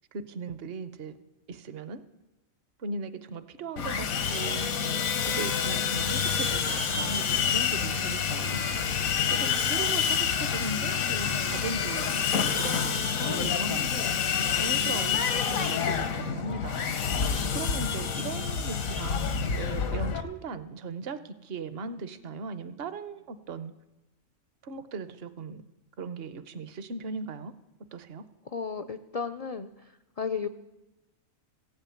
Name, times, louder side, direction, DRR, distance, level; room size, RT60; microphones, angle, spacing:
voice 1, 0.1-1.2 1.5-2.0 2.8-4.7 5.3-8.7 9.3-12.1 12.5-13.8 14.5-16.9 17.5-23.7 24.6-25.6 26.0-27.5 27.9-28.3, right 4 dB, 55° right, 12 dB, 0.9 m, -38 dB
Sawing, 3.8-20.2, left 7 dB, 90° left, 1.5 m, -28 dB
voice 2, 28.5-30.5, left 6 dB, 70° left, 9 dB, 0.3 m, -34 dB
15.5 x 8.1 x 9.0 m, 1.0 s
omnidirectional pair, 1.4 m